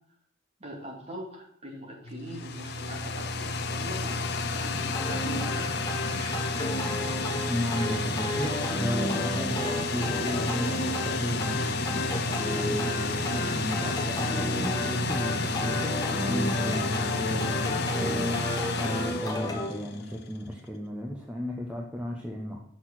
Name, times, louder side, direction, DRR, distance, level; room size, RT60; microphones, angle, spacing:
voice 1, 0.6-5.8 6.1-6.4 9.3-9.6, equal, 30° right, -3 dB, 2.6 m, -42 dB
sound 1, 2.0-20.2, left 3 dB, 50° left, 0.6 m, -31 dB
sound 2, 4.9-19.7, left 1 dB, 20° left, 1.3 m, -33 dB
voice 2, 7.5-22.6, equal, 5° right, -2 dB, 0.9 m, -34 dB
6.5 x 6.2 x 6.0 m, 0.68 s
head